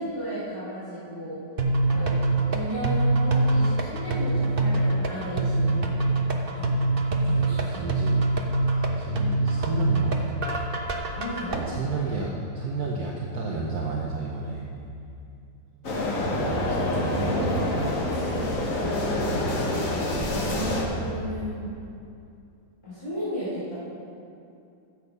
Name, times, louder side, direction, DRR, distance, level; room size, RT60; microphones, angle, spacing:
voice 1, 0.0-1.4 1.8-2.2 2.5-6.1 6.4-6.7 7.2-7.8 11.1-11.6 20.4-21.7 22.8-23.8, equal, 15° left, -12 dB, 3.1 m, -34 dB
sound 1, 1.6-11.6, right 2 dB, 40° right, 0.8 m, -24 dB
voice 2, 7.4-8.2 8.7-10.6 11.5-14.7 16.1-18.0 19.0-19.9 20.6-21.1, right 3 dB, 60° right, -2 dB, 1.4 m, -32 dB
sound 2, 15.8-20.8, left 1 dB, 50° left, 1.7 m, -27 dB
13.5 x 8.1 x 5.4 m, 2.6 s
omnidirectional pair, 2.0 m